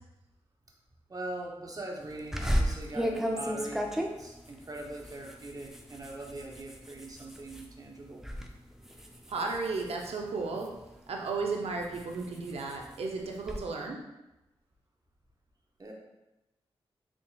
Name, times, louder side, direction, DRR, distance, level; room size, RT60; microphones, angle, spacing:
voice 1, 1.1-8.2 15.8-15.9, right 2 dB, 35° right, 0 dB, 0.8 m, -42 dB
sound 1, 2.3-7.7 8.1-8.5 8.8-10.9 11.4-13.6, equal, 5° right, 0.5 m, -34 dB
voice 2, 9.3-10.7 11.1-14.0, right 3 dB, 75° right, 1 dB, 0.6 m, -34 dB
3.8 x 3.7 x 2.3 m, 0.97 s
cardioid pair, 45°, 10 cm